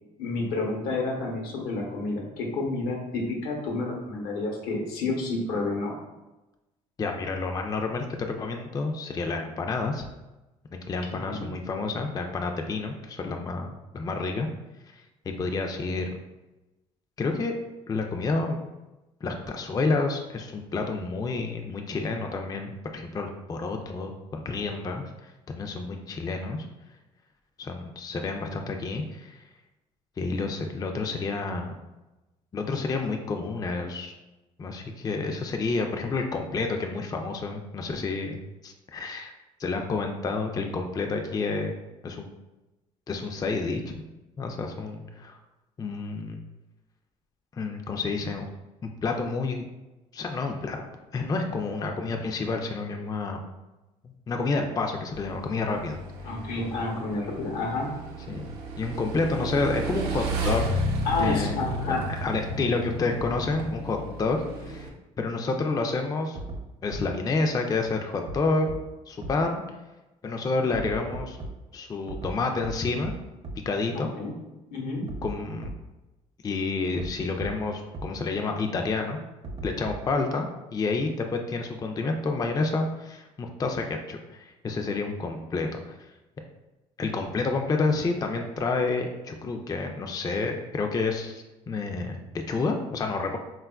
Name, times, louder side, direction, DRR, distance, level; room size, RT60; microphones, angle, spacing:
voice 1, 0.2-5.9 11.3-11.4 56.2-57.9 61.1-62.1 73.9-74.3 74.7-75.0, left 3 dB, 80° left, 0 dB, 0.8 m, -30 dB
voice 2, 7.0-10.0 10.7-14.5 15.3-16.1 17.2-17.5 17.9-18.6 19.2-25.0 25.5-26.7 27.6-29.4 30.2-31.7 32.5-34.1 34.6-38.4 38.6-39.3 39.6-41.7 42.0-42.3 43.1-43.8 44.4-45.4 45.8-46.4 47.6-48.5 49.0-49.6 50.1-50.9 51.1-53.4 54.0-56.0 56.2-56.3 58.3-60.6 61.2-61.6 61.9-64.9 65.2-66.4 66.8-68.7 69.1-69.6 70.2-71.4 71.7-73.1 73.7-74.1 75.2-75.7 76.4-79.2 79.6-80.5 80.7-86.0 87.0-92.2 92.5-93.4, left 3 dB, 25° left, 4 dB, 0.4 m, -29 dB
Motorcycle / Engine, 55.1-64.9, right 1 dB, 75° right, 0.6 m, -33 dB
sound 1, 66.4-66.6 66.9-67.0 68.3-68.4 68.7-68.8 69.2-69.3 70.7-71.5 72.1-72.3 72.6-72.7 73.0-73.1 73.4-73.5 75.1-75.3 75.6-75.7 77.0-77.1 77.4-77.5 77.9-78.0 79.4-80.1, right 2 dB, 35° right, 0.6 m, -36 dB
3.5 x 2.3 x 2.3 m, 1.0 s
supercardioid pair, 70°, 16 cm